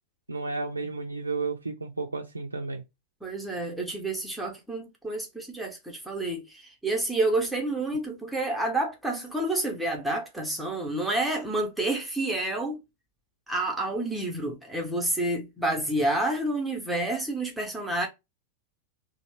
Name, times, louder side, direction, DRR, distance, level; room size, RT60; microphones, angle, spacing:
voice 1, 0.3-2.8, right 3 dB, 80° right, 0.3 m, -32 dB
voice 2, 3.2-12.8 13.5-18.1, right 2 dB, 5° right, 0.7 m, -29 dB
2.9 x 2.0 x 2.9 m
figure-of-eight pair, 90°, 0 cm